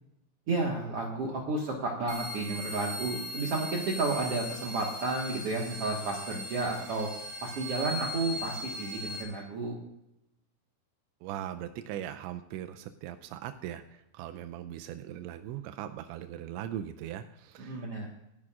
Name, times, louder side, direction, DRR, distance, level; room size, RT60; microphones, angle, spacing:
voice 1, 0.5-7.1 7.4-9.7 17.6-18.1, right 3 dB, 65° right, -1 dB, 1.5 m, -32 dB
sound 1, 2.1-9.2, left 1 dB, 40° right, 4.0 m, -39 dB
voice 2, 11.2-18.1, right 11 dB, 90° right, 8 dB, 3.0 m, -40 dB
28.0 x 11.0 x 2.4 m, 0.90 s
omnidirectional pair, 5.1 m